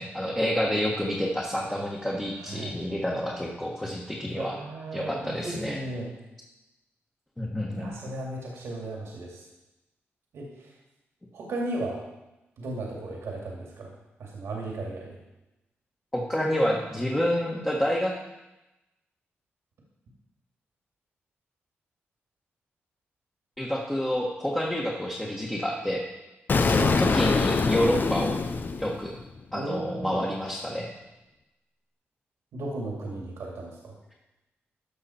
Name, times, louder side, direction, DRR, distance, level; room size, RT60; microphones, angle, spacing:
voice 1, 0.0-4.6 4.9-5.8 7.4-7.9 16.1-18.1 23.6-26.0 26.6-28.3 28.8-29.1 29.5-30.9, equal, 10° left, -3 dB, 1.6 m, -28 dB
voice 2, 2.4-2.7 4.3-6.1 7.7-9.4 10.3-10.7 11.3-12.0 12.6-13.9 14.2-15.2 26.8-27.0 29.5-30.2 32.5-33.9, right 2 dB, 85° right, -2 dB, 2.4 m, -35 dB
Explosion, 26.5-29.4, left 4 dB, 45° left, 0.7 m, -24 dB
13.5 x 5.8 x 4.4 m, 1.0 s
cardioid pair, 75°, 4 cm